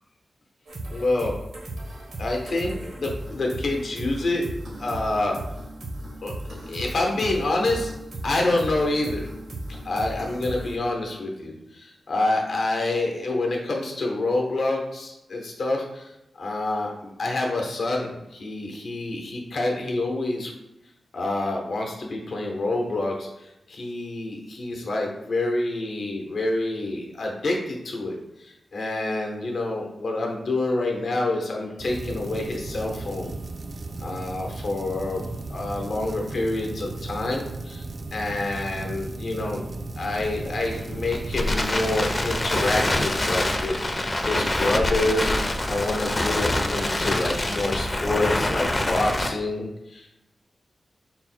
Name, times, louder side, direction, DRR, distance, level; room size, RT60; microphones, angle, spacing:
sound 1, 0.7-10.8, right 1 dB, 90° right, 0.9 m, -36 dB
voice 1, 0.9-1.4 2.2-4.5 4.8-5.4 6.2-7.9 8.2-9.3 9.8-16.1 16.4-20.5 21.1-33.4 34.0-37.8 38.1-39.7 40.0-50.2, left 2 dB, 75° left, 0 dB, 0.8 m, -27 dB
sound 2, 31.8-43.1, right 3 dB, 55° right, 0.3 m, -36 dB
Crackle, 40.0-49.3, left 1 dB, 30° left, 0.5 m, -26 dB
4.0 x 2.1 x 4.3 m, 0.90 s
cardioid pair, 70°, 0 cm